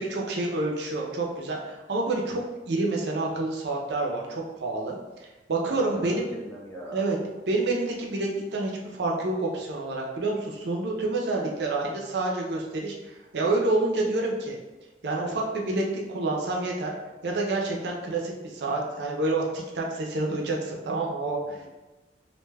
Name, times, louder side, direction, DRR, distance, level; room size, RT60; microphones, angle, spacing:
voice 1, 0.0-5.0 5.2-6.3 6.9-7.2 7.5-14.6 15.0-16.9 17.2-21.6, right 2 dB, 70° right, -1 dB, 0.5 m, -28 dB
voice 2, 5.7-7.1 21.4-21.7, equal, 10° left, -6 dB, 0.8 m, -40 dB
2.5 x 2.2 x 3.3 m, 1.1 s
head